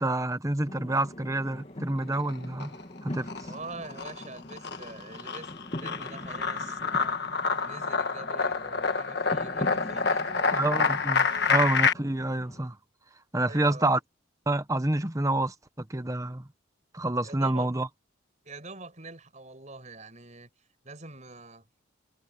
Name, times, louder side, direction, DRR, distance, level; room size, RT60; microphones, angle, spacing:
voice 1, 0.0-3.5 10.5-12.8 13.3-14.0 14.5-16.5 16.9-17.9, right 2 dB, 15° right, 1.0 m, -28 dB
sound 1, 0.7-12.6, left 1 dB, 30° left, 2.3 m, -42 dB
sound 2, 2.0-2.8 3.1-11.9, left 5 dB, 55° left, 1.5 m, -28 dB
voice 2, 3.5-7.2 7.7-11.5 13.4-14.0 17.2-17.7 18.4-20.5 20.8-21.7, right 3 dB, 35° right, 5.3 m, -45 dB
head